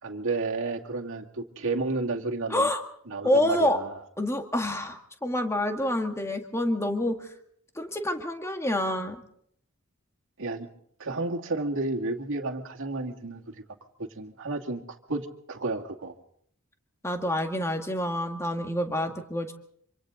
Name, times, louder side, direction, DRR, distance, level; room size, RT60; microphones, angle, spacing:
voice 1, 0.0-2.7 3.1-4.0 10.4-10.7 11.0-13.6 14.0-16.1, right 3 dB, 65° right, 1 dB, 2.3 m, -31 dB
voice 2, 2.5-2.8 3.2-3.8 4.2-7.3 7.8-9.2 17.0-19.5, left 1 dB, 15° left, 5 dB, 1.9 m, -27 dB
26.0 x 26.0 x 3.9 m, 0.66 s
head